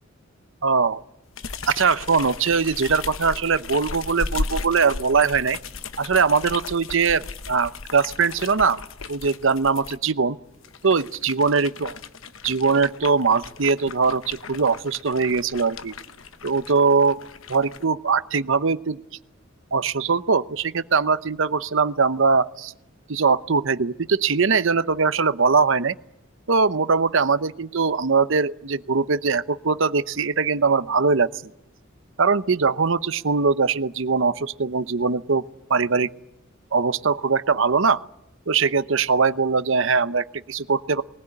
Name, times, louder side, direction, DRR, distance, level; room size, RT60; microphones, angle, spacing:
voice 1, 0.6-1.0 1.7-5.6 6.0-8.8 9.1-10.4 10.8-11.9 12.4-15.9 16.4-17.2 17.5-19.0 19.7-22.7 23.1-25.9 26.5-31.3 32.2-35.4 35.7-36.1 36.7-38.0 38.5-41.0, right 5 dB, 65° right, 14 dB, 0.8 m, -21 dB
sound 1, 1.3-10.0 10.6-17.8, left 4 dB, 75° left, 1.1 m, -36 dB
21.0 x 20.0 x 9.9 m, 0.84 s
head